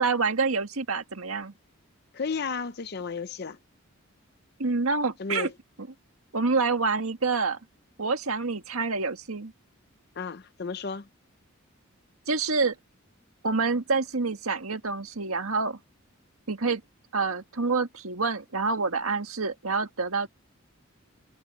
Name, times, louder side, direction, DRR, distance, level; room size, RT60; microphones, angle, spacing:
voice 1, 0.0-1.5 4.6-5.5 6.3-7.6 8.0-9.5 12.3-12.7 13.4-15.8 16.5-16.8 17.1-20.3, right 4 dB, 90° right, 1.8 m, -27 dB
voice 2, 2.1-3.6 5.2-5.5 10.2-11.1, left 5 dB, 50° left, 0.6 m, -33 dB
head